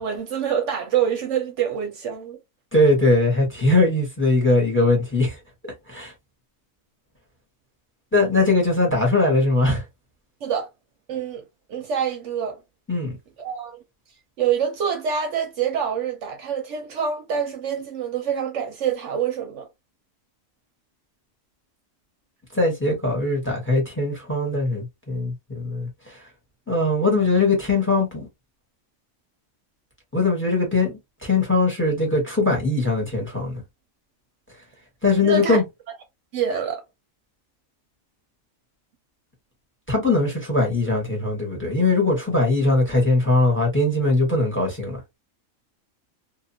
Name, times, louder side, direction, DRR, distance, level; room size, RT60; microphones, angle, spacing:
voice 1, 0.0-2.4 10.4-10.7 11.1-11.4 11.7-12.6 13.4-13.8 14.4-19.7 35.2-35.6 36.3-36.8, right 7 dB, 65° right, 0.9 m, -26 dB
voice 2, 2.7-5.4 5.9-6.1 8.1-9.8 12.9-13.2 22.5-26.2 26.7-28.3 30.1-33.6 35.0-35.6 39.9-45.0, left 2 dB, 10° left, 1.1 m, -21 dB
2.7 x 2.4 x 2.6 m
omnidirectional pair, 1.4 m